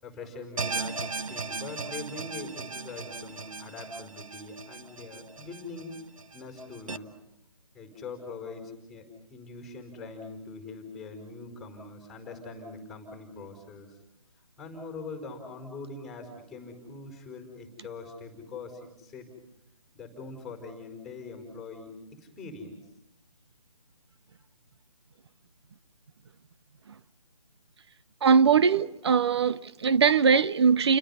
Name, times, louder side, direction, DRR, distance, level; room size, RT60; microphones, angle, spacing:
voice 1, 0.0-5.9 6.3-7.1 7.7-14.0 14.6-19.3 19.9-22.8, left 3 dB, ahead, 4.7 m, -42 dB
sound 1, 0.6-7.0, right 4 dB, 65° right, 1.2 m, -37 dB
voice 2, 28.2-31.0, right 6 dB, 45° right, 0.8 m, -21 dB
30.0 x 24.5 x 5.6 m
figure-of-eight pair, 155°, 19 cm